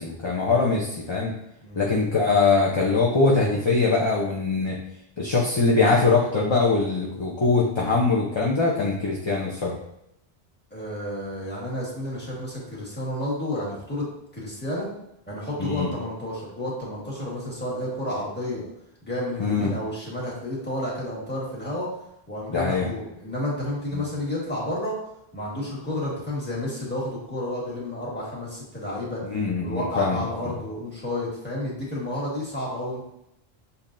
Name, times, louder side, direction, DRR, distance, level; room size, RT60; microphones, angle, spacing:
voice 1, 0.0-1.3 1.8-4.8 5.2-9.8 15.6-15.9 19.4-19.7 22.5-22.9 23.9-24.0 29.3-30.2 30.4-30.5, left 3 dB, 35° left, -4 dB, 0.6 m, -22 dB
voice 2, 10.7-14.1 14.3-14.9 15.3-18.6 19.0-21.9 22.3-24.9 25.3-29.2 29.6-33.0, left 1 dB, 10° left, -6 dB, 1.6 m, -31 dB
7.0 x 2.8 x 2.6 m, 0.80 s
omnidirectional pair, 1.1 m